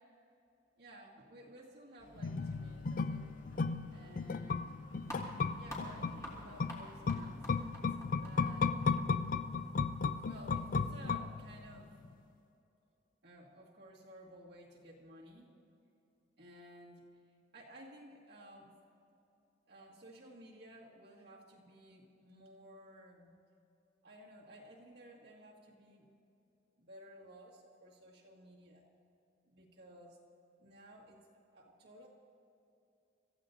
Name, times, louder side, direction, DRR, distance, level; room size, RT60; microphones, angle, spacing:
voice 1, 0.8-3.3 3.9-4.8 5.6-7.9 8.1-8.7 9.8-12.0 13.2-15.5 16.4-17.1 17.5-18.8 19.7-23.4 24.0-26.1 26.8-28.9 29.5-30.2 30.6-31.3 31.5-32.1, right 1 dB, 55° right, -5 dB, 2.1 m, -56 dB
Engine, 2.0-11.8, left 2 dB, 65° left, 3.4 m, -60 dB
sound 1, 2.2-11.7 12.0-12.1, left 4 dB, 45° left, 0.4 m, -35 dB
sound 2, 5.0-11.1, left 1 dB, 15° left, 3.0 m, -49 dB
26.0 x 15.0 x 2.7 m, 2.7 s
head